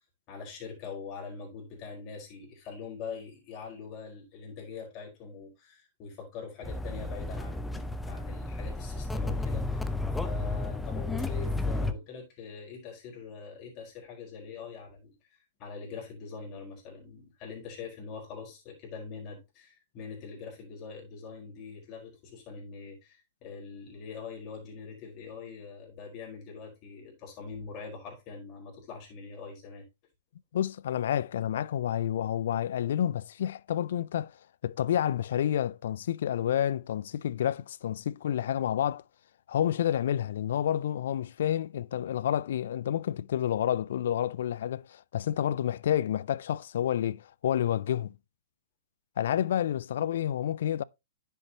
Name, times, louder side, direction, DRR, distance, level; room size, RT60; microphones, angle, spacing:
voice 1, 0.3-29.8, left 5 dB, 35° left, 4.5 m, -43 dB
sound 1, 6.6-11.9, left 2 dB, 5° left, 0.7 m, -32 dB
voice 2, 30.5-34.3 34.6-39.0 39.5-48.2 49.2-50.8, left 10 dB, 60° left, 0.4 m, -29 dB
10.0 x 7.0 x 2.9 m
hypercardioid pair, 115°, 0 cm